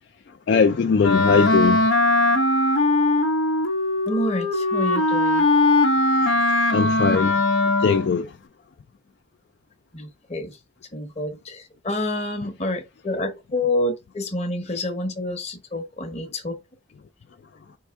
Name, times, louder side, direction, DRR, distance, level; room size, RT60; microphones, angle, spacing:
voice 1, 0.5-1.9 6.7-7.4 7.8-8.3, left 5 dB, 60° left, 0.3 m, -20 dB
Wind instrument woodwind instrument, 1.0-8.2, left 2 dB, 90° left, 0.9 m, -20 dB
voice 2, 4.1-5.5 9.9-10.6 10.9-16.6, left 1 dB, 35° left, 0.9 m, -28 dB
4.7 x 2.6 x 3.5 m
head